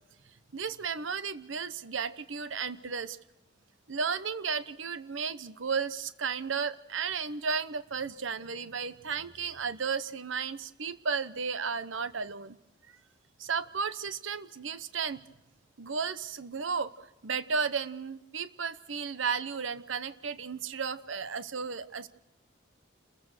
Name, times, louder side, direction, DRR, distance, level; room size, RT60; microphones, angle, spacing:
voice 1, 0.5-3.2 3.9-12.6 13.4-15.2 15.8-22.1, right 5 dB, 80° right, 14 dB, 0.9 m, -34 dB
28.5 x 15.5 x 6.5 m, 0.95 s
head